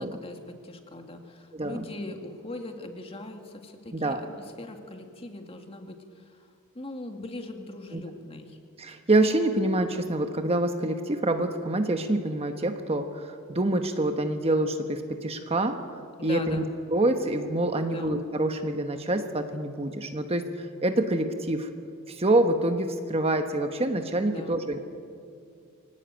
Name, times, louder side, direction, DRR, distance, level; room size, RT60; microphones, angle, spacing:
voice 1, 0.0-6.5 6.7-8.6 16.2-16.7 17.8-18.2 24.3-24.6, left 2 dB, 25° left, 4 dB, 2.1 m, -40 dB
voice 2, 1.5-1.9 3.9-4.2 7.9-8.0 8.8-15.8 16.2-16.6 16.9-21.7 22.1-24.8, right 1 dB, 30° right, 6 dB, 1.2 m, -26 dB
24.0 x 18.0 x 9.1 m, 2.4 s
head